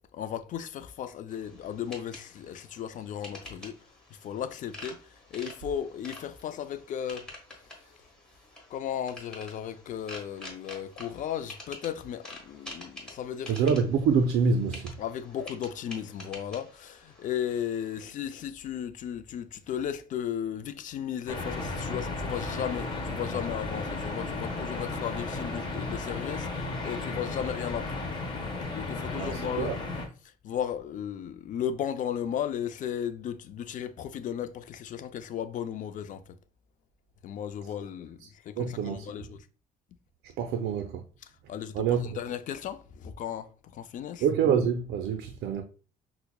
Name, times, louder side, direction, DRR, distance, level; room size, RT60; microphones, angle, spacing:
voice 1, 0.1-3.8 4.1-7.3 8.7-13.6 15.0-26.5 26.8-28.2 28.7-29.8 30.4-36.4 37.2-39.4 41.5-44.2, left 9 dB, 50° left, 0.4 m, -35 dB
sound 1, 1.3-18.0, left 1 dB, 5° left, 1.3 m, -48 dB
voice 2, 13.5-15.0 29.1-29.8 38.6-39.1 40.4-41.0 41.7-42.2 44.2-45.6, right 6 dB, 70° right, 0.4 m, -26 dB
sound 2, 21.3-30.1, left 3 dB, 25° left, 1.1 m, -34 dB
5.7 x 2.0 x 2.2 m
cardioid pair, 110°, 17 cm